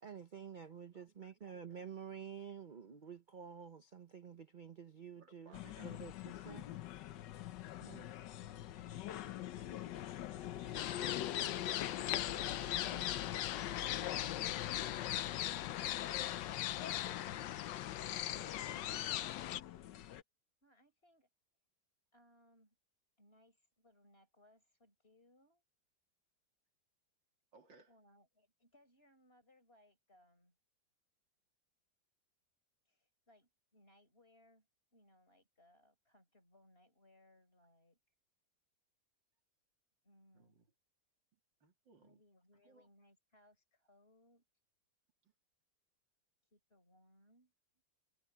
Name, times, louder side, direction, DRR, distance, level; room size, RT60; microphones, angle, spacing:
voice 1, 0.0-6.7 7.8-8.1, right 7 dB, 50° right, 0.5 m, -50 dB
voice 2, 0.9-1.4 5.1-6.0 11.5-13.6 16.5-17.1 18.0-19.5 27.5-27.9 40.3-40.7 41.3-42.2 42.6-42.9 45.2-45.3, right 4 dB, 85° right, 3.5 m, -63 dB
sound 1, 5.5-20.2, left 12 dB, 75° left, 1.4 m, -45 dB
sound 2, 10.7-19.6, left 13 dB, 90° left, 1.4 m, -39 dB
voice 3, 20.6-21.3 22.1-22.8 23.2-25.6 27.9-30.6 32.8-38.0 40.0-40.6 42.0-44.4 46.5-47.5, left 1 dB, 30° left, 4.9 m, -69 dB
omnidirectional pair, 2.0 m